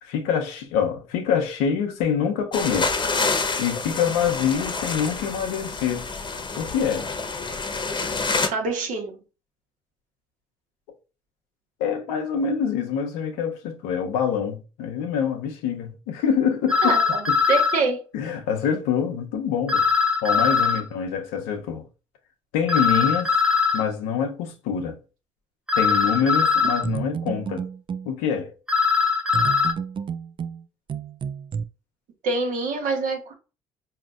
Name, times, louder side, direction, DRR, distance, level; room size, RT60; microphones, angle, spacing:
voice 1, 0.0-2.9 3.6-6.1 6.6-7.1 11.8-17.0 18.1-19.8 20.2-21.8 22.5-23.3 23.7-25.0 25.8-27.6 28.0-28.5, left 7 dB, 80° left, 0.7 m, -25 dB
sound 1, 2.5-8.5, left 4 dB, 35° left, 0.9 m, -28 dB
voice 2, 8.5-9.2 16.8-18.0 32.2-33.3, right 3 dB, 65° right, 1.2 m, -25 dB
sound 2, 16.7-17.8 19.7-20.8 22.7-23.8 25.7-26.8 28.7-29.7, left 5 dB, 5° right, 0.7 m, -21 dB
sound 3, 26.6-28.1 29.3-31.6, right 6 dB, 35° right, 0.4 m, -31 dB
4.9 x 2.8 x 2.4 m
hypercardioid pair, 50°, 14 cm